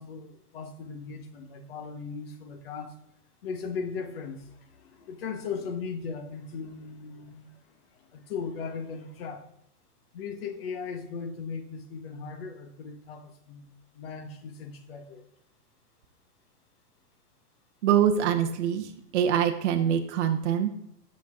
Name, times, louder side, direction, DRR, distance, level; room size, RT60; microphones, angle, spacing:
voice 1, 0.0-2.9 3.4-9.4 10.1-13.7 13.9-15.2, left 5 dB, 40° left, 8 dB, 1.0 m, -38 dB
voice 2, 17.8-18.9 19.1-20.7, right 9 dB, 45° right, 5 dB, 0.7 m, -24 dB
8.1 x 6.3 x 3.6 m, 0.78 s
hypercardioid pair, 170°, 47 cm